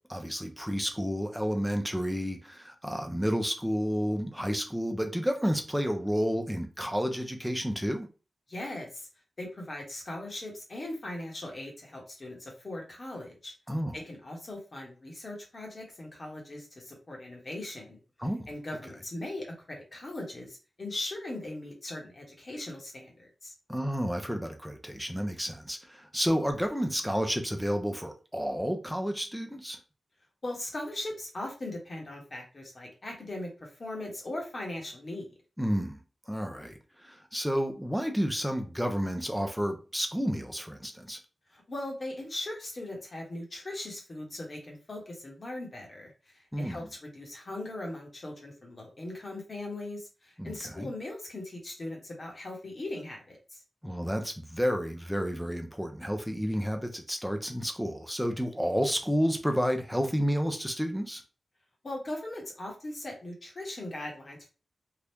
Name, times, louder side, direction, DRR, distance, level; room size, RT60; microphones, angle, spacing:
voice 1, 0.1-8.1 13.7-14.0 18.2-18.5 23.7-29.8 35.6-36.0 36.3-41.2 46.5-46.9 50.4-50.9 53.8-61.2, equal, ahead, 4 dB, 0.7 m, -30 dB
voice 2, 8.5-9.1 9.4-13.5 13.9-18.0 18.5-23.5 30.4-35.3 41.5-53.6 61.8-64.5, left 1 dB, 50° left, 0 dB, 1.2 m, -39 dB
2.9 x 2.4 x 3.5 m, 0.34 s
cardioid pair, 60°, 0 cm